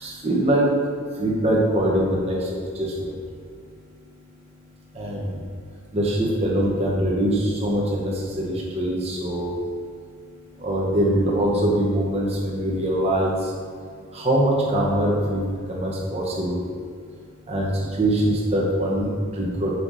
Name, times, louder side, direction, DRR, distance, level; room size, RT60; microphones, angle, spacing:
voice 1, 0.0-0.7 1.2-2.4 2.8-3.1 5.0-5.2 5.9-9.5 10.6-13.3 14.1-15.4 15.7-16.6 17.5-17.7 18.0-19.1 19.4-19.7, right 1 dB, 30° right, -4 dB, 0.9 m, -22 dB
5.7 x 4.8 x 3.9 m, 2.1 s
head